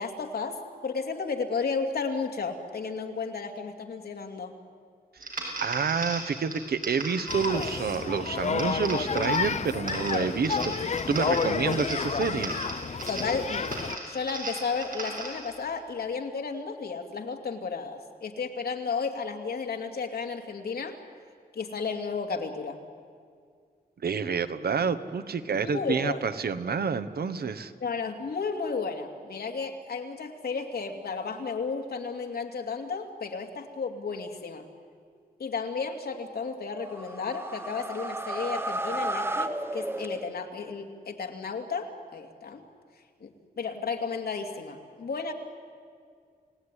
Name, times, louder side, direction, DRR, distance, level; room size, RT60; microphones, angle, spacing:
voice 1, 0.0-4.5 13.1-21.0 21.5-22.8 25.7-26.2 27.8-34.7 35.4-42.6 43.2-43.3 43.6-45.3, left 5 dB, 80° left, 3 dB, 2.6 m, -33 dB
sound 1, 5.2-15.5, right 2 dB, 60° right, 6.2 m, -38 dB
voice 2, 5.6-12.5 24.0-27.7, right 5 dB, 75° right, 12 dB, 1.2 m, -29 dB
sound 2, 7.3-14.0, left 5 dB, 45° left, 0.7 m, -30 dB
sound 3, 36.8-40.6, right 1 dB, 15° right, 1.0 m, -33 dB
29.0 x 18.0 x 10.0 m, 2.2 s
wide cardioid pair, 145°, 16 cm